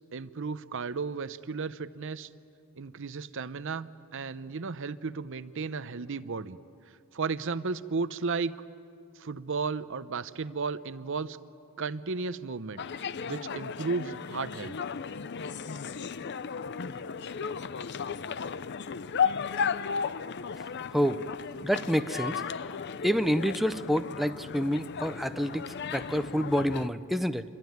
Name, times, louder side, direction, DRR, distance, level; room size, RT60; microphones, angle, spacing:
voice 1, 0.1-2.3 2.8-6.6 7.1-8.5 9.2-11.4 11.8-14.7, right 4 dB, 60° right, 14 dB, 0.7 m, -34 dB
sound 1, 12.8-26.9, left 6 dB, 50° left, 0.6 m, -35 dB
voice 2, 20.9-21.2 21.6-22.4 23.0-27.4, equal, ahead, 9 dB, 0.6 m, -28 dB
26.5 x 23.0 x 9.4 m, 2.5 s
head